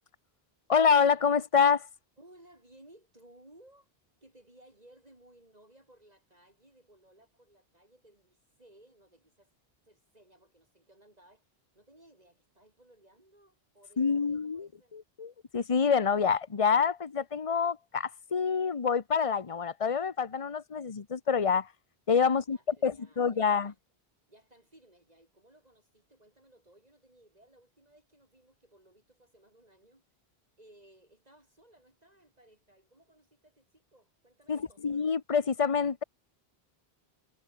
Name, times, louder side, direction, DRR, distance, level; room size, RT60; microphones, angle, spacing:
voice 1, 0.7-1.9 14.0-21.7 22.1-23.7 34.5-36.0, left 6 dB, 35° left, 1.1 m, -27 dB
voice 2, 2.2-3.9 4.2-9.5 9.9-11.5 11.7-15.0 22.3-23.8 24.3-30.0 30.6-34.9, right 1 dB, 40° right, 5.4 m, -60 dB
omnidirectional pair, 1.0 m